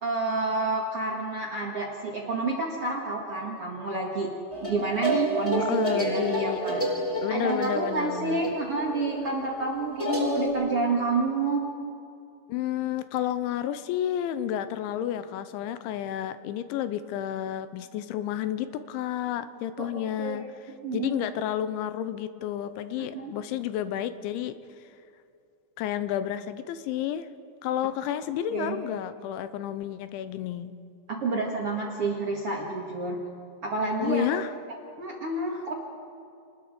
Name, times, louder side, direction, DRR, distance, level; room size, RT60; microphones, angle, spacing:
voice 1, 0.0-4.3 4.6-6.8 7.3-11.6 19.8-19.9 20.2-21.2 23.0-23.3 28.5-28.8 31.1-33.2 33.6-34.3 35.0-35.7, right 3 dB, 50° right, -1 dB, 1.8 m, -29 dB
sound 1, 4.5-10.5, right 1 dB, 5° left, 3.3 m, -29 dB
voice 2, 5.6-6.6 7.2-8.5 12.5-24.6 25.8-27.3 27.6-30.8 34.0-34.5, left 11 dB, 85° left, 12 dB, 3.1 m, -31 dB
29.0 x 20.0 x 5.0 m, 2.5 s
omnidirectional pair, 5.3 m